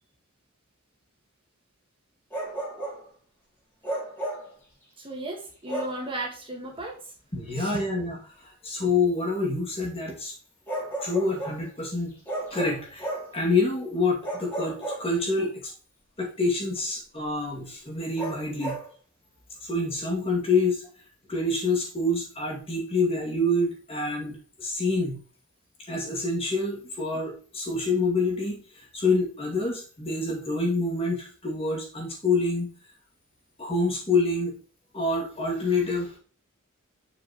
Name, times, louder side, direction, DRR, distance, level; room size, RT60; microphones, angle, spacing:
Bark, 2.3-3.0 3.8-4.5 5.7-6.0 7.7-7.9 10.7-11.6 12.3-13.4 14.2-15.5 18.2-18.9, right 1 dB, 10° left, 3.2 m, -33 dB
voice 1, 5.0-6.9 7.6-7.7 18.6-18.7, right 2 dB, 25° right, 0 dB, 1.6 m, -35 dB
voice 2, 7.3-8.2 8.6-10.3 11.0-12.1 12.5-15.7 16.2-18.8 19.6-20.8 21.3-25.2 25.9-32.7 33.6-34.6 34.9-36.2, left 2 dB, 25° left, -1 dB, 2.3 m, -27 dB
7.6 x 6.0 x 3.0 m, 0.39 s
head